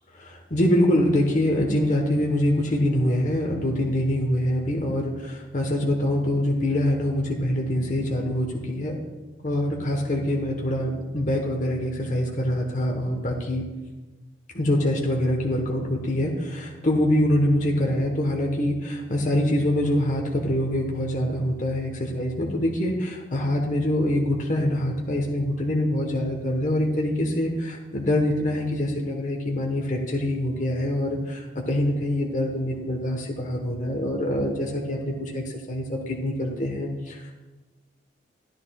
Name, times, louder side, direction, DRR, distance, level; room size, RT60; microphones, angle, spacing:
voice 1, 0.1-9.0 9.4-13.7 14.5-37.3, left 1 dB, 45° left, 0 dB, 1.1 m, -25 dB
13.0 x 10.5 x 2.3 m, 1.2 s
head